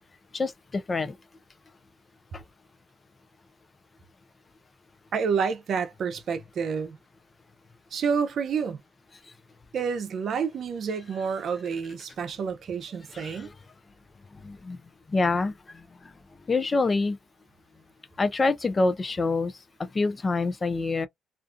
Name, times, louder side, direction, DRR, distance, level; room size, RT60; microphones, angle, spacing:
voice 1, 0.3-1.1 2.3-2.4 13.1-13.5 14.4-14.8 15.1-15.5 16.5-17.2 18.2-19.5 19.8-21.1, left 3 dB, 30° left, 0.5 m, -26 dB
voice 2, 5.1-7.0 7.9-8.8 9.7-13.5, right 6 dB, 60° right, 0.6 m, -29 dB
2.5 x 2.3 x 2.5 m
cardioid pair, 90°, 0 cm